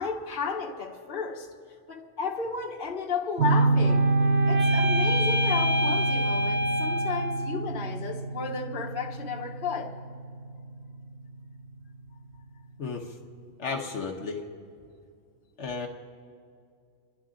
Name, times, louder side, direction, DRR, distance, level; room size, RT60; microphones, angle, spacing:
voice 1, 0.0-1.5 1.9-4.1 4.5-9.9, left 4 dB, 45° left, 1.3 m, -33 dB
sound 1, 3.4-7.7, left 1 dB, 20° right, 0.3 m, -29 dB
sound 2, 3.4-12.1, right 3 dB, 90° right, 1.2 m, -27 dB
voice 2, 12.8-13.2 13.6-14.4 15.6-15.9, left 4 dB, 65° left, 1.3 m, -33 dB
27.5 x 11.0 x 3.8 m
omnidirectional pair, 1.3 m